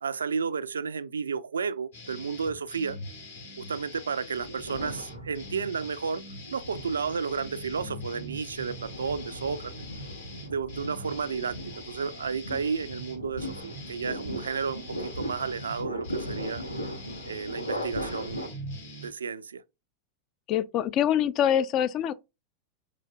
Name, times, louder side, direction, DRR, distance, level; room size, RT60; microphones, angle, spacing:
voice 1, 0.0-3.0 3.6-6.2 6.5-9.7 10.4-16.6 17.2-18.5 19.0-19.6, right 5 dB, 70° right, 0.3 m, -32 dB
sound 1, 1.9-19.1, left 1 dB, 65° left, 2.3 m, -44 dB
sound 2, 4.4-5.8 6.4-18.5, equal, 90° left, 0.8 m, -38 dB
voice 2, 20.5-22.1, left 10 dB, 35° left, 0.4 m, -24 dB
4.9 x 3.8 x 2.2 m
figure-of-eight pair, 90°, 0 cm